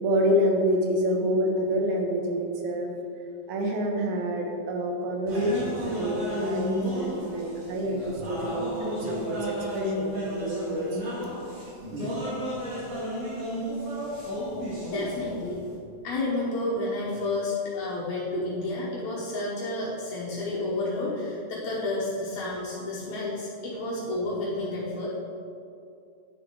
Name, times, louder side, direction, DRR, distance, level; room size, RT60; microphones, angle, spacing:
voice 1, 0.0-2.9 3.5-11.0, equal, 80° right, 1 dB, 2.5 m, -27 dB
sound 1, 5.3-15.7, equal, 60° right, 2.9 m, -33 dB
voice 2, 14.9-15.6 16.0-25.1, left 2 dB, 75° left, -7 dB, 2.5 m, -30 dB
10.0 x 6.6 x 3.8 m, 2.5 s
omnidirectional pair, 3.3 m